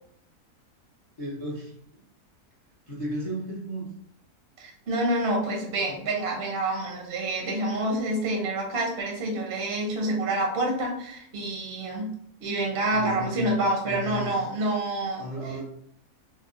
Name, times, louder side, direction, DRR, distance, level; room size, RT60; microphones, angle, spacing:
voice 1, 1.2-1.7 2.9-3.9 12.9-13.6 13.8-14.4 15.2-15.6, equal, 45° left, -5 dB, 0.4 m, -34 dB
voice 2, 4.6-12.1 12.4-15.2, right 1 dB, 55° right, 0 dB, 0.7 m, -27 dB
3.1 x 2.0 x 3.7 m, 0.69 s
omnidirectional pair, 1.7 m